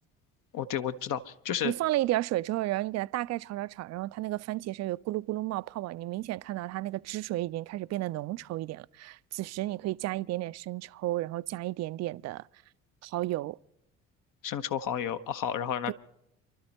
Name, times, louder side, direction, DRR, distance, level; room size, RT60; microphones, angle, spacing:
voice 1, 0.5-1.7 14.4-15.9, left 9 dB, 55° left, 1.0 m, -32 dB
voice 2, 1.6-12.5 13.0-13.6 15.9-16.0, right 16 dB, 45° right, 0.4 m, -32 dB
29.0 x 12.0 x 3.0 m
hypercardioid pair, 55°, 39 cm